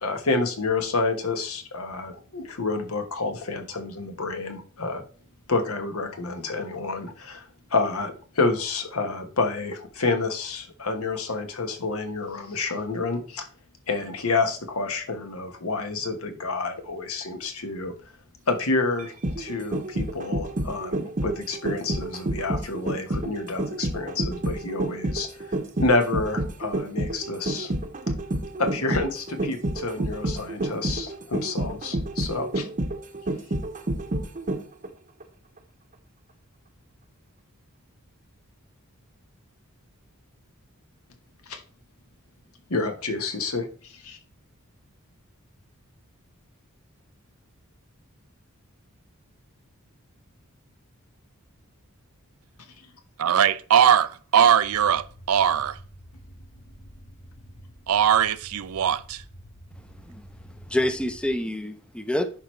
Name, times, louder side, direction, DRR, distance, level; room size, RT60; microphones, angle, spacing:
voice 1, 0.0-5.0 5.5-13.5 13.9-17.9 18.5-25.3 25.8-27.7 28.6-32.7 41.5-41.6 42.7-44.2, left 3 dB, 70° left, 1.2 m, -28 dB
sound 1, 19.0-34.9 35.2-35.3, right 1 dB, 35° right, 0.8 m, -29 dB
voice 2, 53.2-55.8 57.9-59.2, right 8 dB, 70° right, 0.4 m, -20 dB
sound 2, 54.6-61.4, equal, 25° left, 1.0 m, -48 dB
voice 3, 59.8-60.3 60.7-62.3, left 1 dB, 5° left, 0.6 m, -27 dB
10.5 x 4.7 x 3.2 m
head